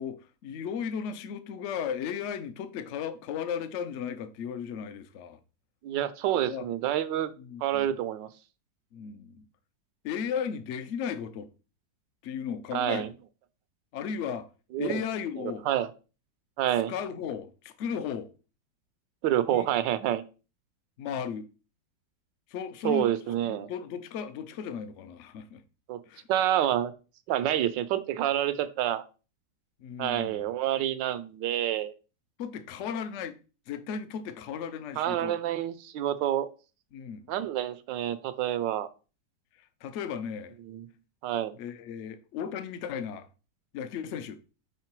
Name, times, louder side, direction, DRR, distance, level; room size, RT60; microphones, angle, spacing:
voice 1, 0.0-5.4 6.3-6.6 7.4-8.0 8.9-9.4 10.0-11.5 12.2-13.1 13.9-14.5 14.8-15.6 16.9-18.3 19.5-19.7 21.0-21.5 22.5-23.1 23.4-25.6 26.1-26.3 29.8-30.5 32.4-33.4 33.7-35.4 36.9-37.3 39.6-40.5 41.6-43.3 43.7-44.4, left 7 dB, 65° left, 0.7 m, -35 dB
voice 2, 5.8-7.3 7.6-8.3 12.7-13.1 14.7-15.0 15.7-15.9 16.6-16.9 19.2-20.2 22.8-23.7 25.9-26.0 26.3-26.9 27.3-29.0 30.0-31.9 35.0-36.5 37.3-38.9 40.7-40.8 41.2-41.5, right 12 dB, 80° right, 1.3 m, -28 dB
5.7 x 3.7 x 4.5 m
omnidirectional pair, 2.0 m